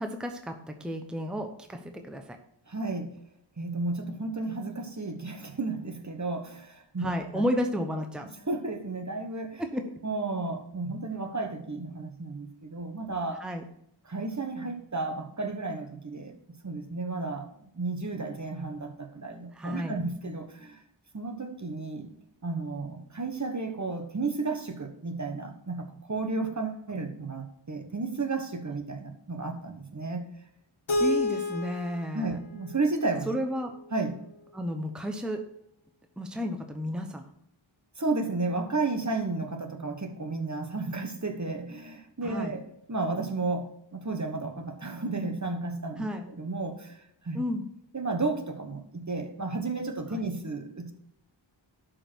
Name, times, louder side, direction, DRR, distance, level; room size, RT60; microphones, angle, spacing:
voice 1, 0.0-2.2 7.0-8.3 9.6-9.8 13.4-13.6 19.5-20.0 31.0-32.4 33.3-33.7 34.5-35.4 36.2-37.2 42.2-42.5 46.0-46.3 47.3-47.7 50.1-50.2, equal, ahead, 5 dB, 0.9 m, -32 dB
voice 2, 2.7-3.1 3.6-7.4 8.2-9.6 10.0-13.4 14.0-16.3 16.6-17.5 17.8-20.8 21.1-22.1 22.4-30.2 32.1-33.3 33.9-34.2 38.0-47.0 47.2-47.4 47.9-50.9, right 3 dB, 35° right, 5 dB, 1.2 m, -33 dB
Keyboard (musical), 30.9-33.8, left 1 dB, 70° left, 1.7 m, -31 dB
11.5 x 5.3 x 4.6 m, 0.73 s
wide cardioid pair, 70°, 48 cm